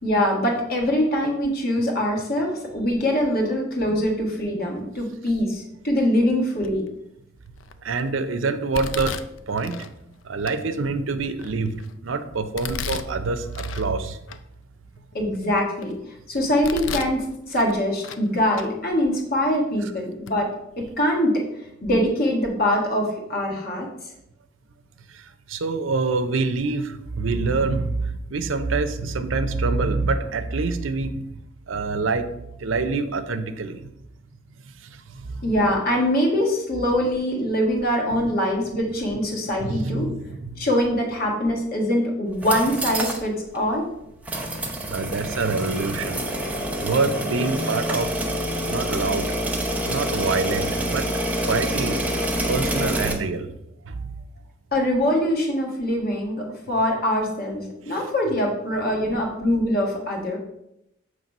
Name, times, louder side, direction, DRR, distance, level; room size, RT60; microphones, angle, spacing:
voice 1, 0.0-6.8 15.1-15.9 16.3-20.5 20.8-21.4 21.8-24.1 35.4-40.1 40.6-43.8 54.7-60.4, left 1 dB, 50° left, 0 dB, 1.6 m, -23 dB
Domestic sounds home sounds, 6.6-7.0 7.6-8.0 8.7-9.9 10.5-10.6 11.1-11.9 12.6-13.9 14.3-14.4 15.0-15.9 16.4-17.2 17.5-18.3 18.5-18.7 19.5-19.6 20.3-20.4 20.7-20.9, left 5 dB, 75° left, 0.4 m, -34 dB
voice 2, 7.8-9.2 9.5-9.8 10.2-14.2 25.1-25.2 25.5-31.3 31.7-32.3 32.6-33.8 34.8-35.5 39.6-40.7 44.9-46.2 46.8-48.2 48.7-49.3 49.8-51.1 51.5-52.0 52.5-53.5 53.8-54.1 57.9-58.0, right 3 dB, 80° right, 10 dB, 0.6 m, -26 dB
sound 1, 42.3-43.2 43.5-43.6 44.2-53.1, equal, 10° right, 0.8 m, -27 dB
7.4 x 3.3 x 5.3 m, 0.83 s
head